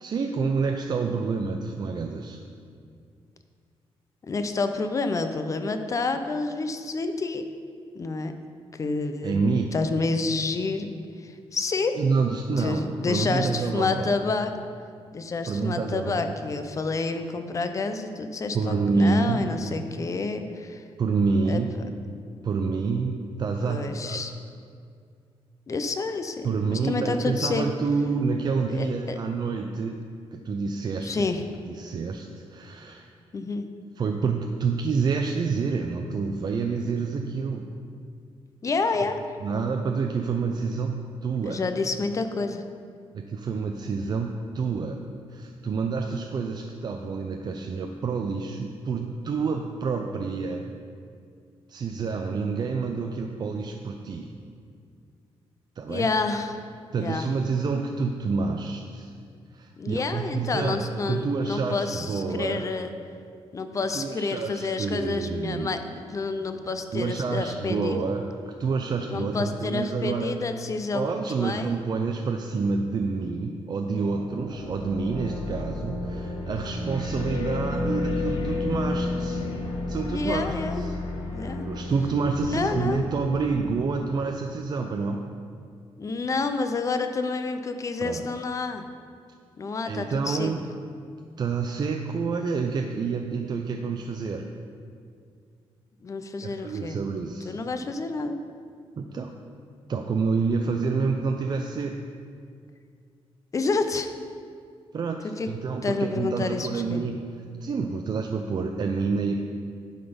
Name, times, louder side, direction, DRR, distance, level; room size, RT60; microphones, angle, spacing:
voice 1, 0.0-2.4 9.2-9.7 11.9-14.2 15.5-16.4 18.5-19.5 21.0-21.7 22.4-24.2 26.4-30.0 30.3-31.1 31.7-33.1 34.0-37.7 39.4-41.6 43.1-45.0 45.3-50.6 51.7-54.3 55.8-56.1 56.9-59.1 59.5-62.6 63.7-65.9 66.9-68.3 68.6-70.4 70.9-79.4 79.9-81.0 81.6-85.2 88.0-88.3 89.9-90.6 91.4-94.5 96.4-97.6 99.0-99.4 99.9-102.0 104.9-107.2 107.6-109.4, right 4 dB, 45° right, 3 dB, 0.4 m, -28 dB
voice 2, 4.2-7.4 7.9-8.3 8.7-9.4 9.7-10.9 11.2-12.0 12.6-14.5 15.1-20.8 21.5-21.6 23.6-24.3 25.7-27.7 28.7-29.2 31.0-31.4 33.3-33.7 38.6-39.2 41.4-42.6 55.9-56.6 57.0-57.3 59.8-62.9 63.5-68.0 69.1-71.1 71.3-71.7 80.0-80.8 81.3-81.6 82.4-83.1 86.0-88.9 89.6-90.5 96.0-97.0 97.5-98.4 103.5-104.1 105.2-105.5 105.8-107.0, left 3 dB, 30° left, 7 dB, 0.5 m, -29 dB
sound 1, 74.0-84.2, left 2 dB, 70° left, 1.5 m, -32 dB
11.5 x 4.0 x 5.2 m, 2.2 s
cardioid pair, 125°, 10 cm